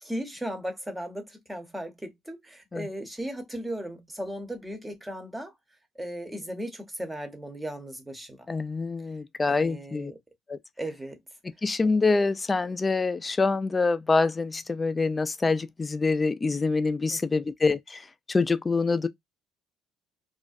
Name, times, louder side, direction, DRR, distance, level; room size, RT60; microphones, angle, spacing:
voice 1, 0.0-5.5 6.0-8.5 9.5-10.2 10.8-11.2 17.1-17.2, right 1 dB, 10° right, 0.8 m, -36 dB
voice 2, 8.5-10.1 10.5-10.6 11.6-19.1, left 3 dB, 25° left, 0.3 m, -26 dB
2.4 x 2.1 x 2.5 m
supercardioid pair, 80°, 0 cm